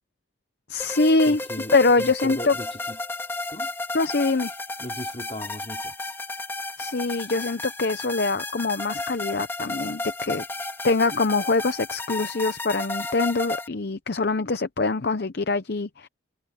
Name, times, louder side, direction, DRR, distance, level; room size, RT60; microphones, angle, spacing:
voice 1, 0.7-1.4 1.7-2.5 3.9-4.5 6.8-10.4 10.8-16.1, left 3 dB, 55° left, 0.7 m, -24 dB
sound 1, 0.8-13.7, left 2 dB, 10° left, 2.9 m, -33 dB
voice 2, 1.3-3.0 3.5-3.7 4.8-5.9, equal, 30° left, 4.0 m, -38 dB
head